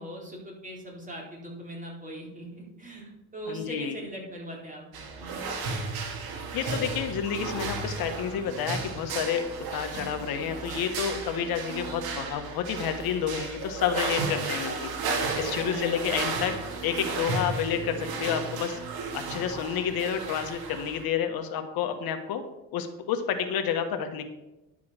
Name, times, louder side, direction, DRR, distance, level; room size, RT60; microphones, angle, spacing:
voice 1, 0.0-4.8 5.2-5.3 15.5-16.4, right 1 dB, 20° right, -2 dB, 4.0 m, -40 dB
voice 2, 3.5-3.9 6.5-9.4 9.7-14.9 15.4-16.5 16.8-18.8 19.1-22.4 22.7-24.2, left 8 dB, 75° left, 6 dB, 1.3 m, -29 dB
sound 1, 4.9-21.0, right 4 dB, 85° right, 2.2 m, -34 dB
11.0 x 5.6 x 6.5 m, 0.98 s
cardioid pair, 110°, 36 cm